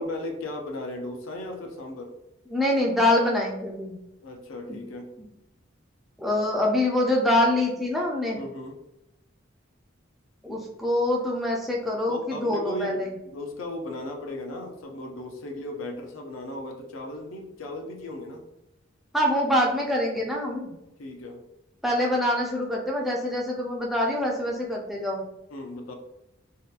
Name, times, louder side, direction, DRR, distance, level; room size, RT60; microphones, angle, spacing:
voice 1, 0.0-2.1 4.2-5.1 8.3-8.8 12.1-18.4 21.0-21.4 25.5-25.9, left 1 dB, 85° left, 3 dB, 0.5 m, -36 dB
voice 2, 2.5-3.9 4.7-4.8 6.2-8.4 10.4-13.1 19.1-20.7 21.8-25.2, left 1 dB, ahead, -3 dB, 0.3 m, -25 dB
2.7 x 2.2 x 2.4 m, 0.89 s
head